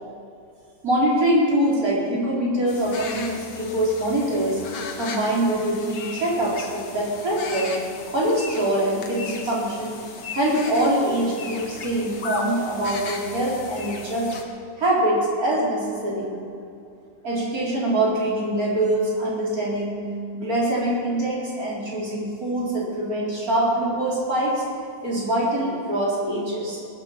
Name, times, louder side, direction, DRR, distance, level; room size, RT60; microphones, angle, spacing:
voice 1, 0.8-4.6 5.0-7.8 8.1-10.0 10.3-14.3 14.8-16.3 17.2-20.0 20.3-24.6 25.0-26.8, right 1 dB, 50° right, -6 dB, 4.3 m, -24 dB
sound 1, 2.7-14.4, left 4 dB, 70° left, 2.0 m, -37 dB
19.0 x 8.4 x 7.7 m, 2.5 s
omnidirectional pair, 2.0 m